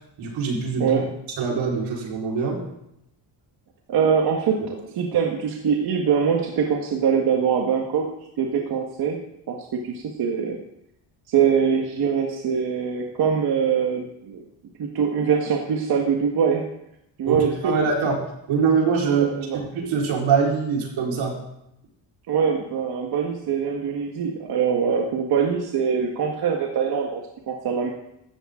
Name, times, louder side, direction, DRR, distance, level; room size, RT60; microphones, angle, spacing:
voice 1, 0.2-1.0 1.4-2.6 4.6-4.7 17.2-19.3 19.5-21.4, right 5 dB, 85° right, -2 dB, 4.9 m, -23 dB
voice 2, 3.9-8.1 8.4-9.2 9.5-10.6 11.3-14.4 14.8-16.7 17.2-17.7 19.0-19.6 22.3-27.9, right 7 dB, 55° right, 0 dB, 1.7 m, -23 dB
16.5 x 13.5 x 3.8 m, 0.81 s
cardioid pair, 165°, 45 cm